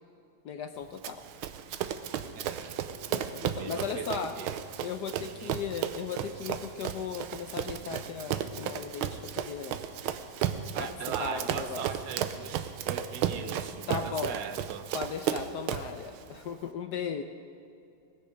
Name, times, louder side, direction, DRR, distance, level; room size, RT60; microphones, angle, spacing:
voice 1, 0.4-1.2 3.1-4.4 4.8-9.8 10.8-10.9 11.2-11.9 13.9-14.4 14.9-17.2, left 7 dB, 70° left, 7 dB, 1.0 m, -37 dB
Run, 1.0-16.0, right 10 dB, 90° right, 1.5 m, -34 dB
voice 2, 2.4-2.8 3.6-4.6 5.3-5.5 10.7-14.9, right 8 dB, 60° right, 9 dB, 1.2 m, -40 dB
19.5 x 15.5 x 3.9 m, 2.5 s
omnidirectional pair, 2.3 m